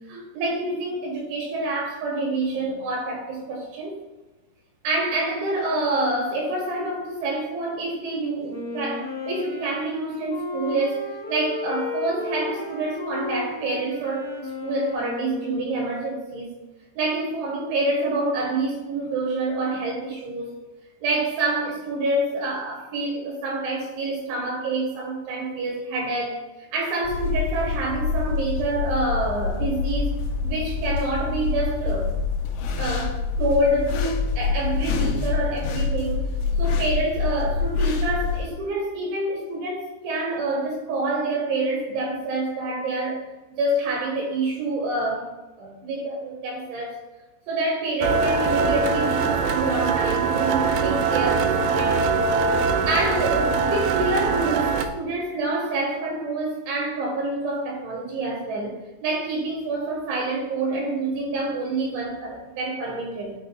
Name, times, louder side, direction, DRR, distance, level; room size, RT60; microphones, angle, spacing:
voice 1, 0.1-4.0 4.8-14.3 14.6-16.5 17.0-20.5 21.0-26.4 26.7-30.1 30.4-32.1 32.8-36.2 36.6-43.2 43.6-47.0 47.5-52.1 52.9-63.4, right 2 dB, 70° right, 3.6 m, -27 dB
Wind instrument woodwind instrument, 8.5-16.2, left 3 dB, 45° left, 0.4 m, -34 dB
sound 1, 27.0-38.5, left 5 dB, 85° left, 3.3 m, -26 dB
sound 2, 48.0-54.9, right 5 dB, 85° right, 2.5 m, -22 dB
12.0 x 6.5 x 2.3 m
omnidirectional pair, 5.9 m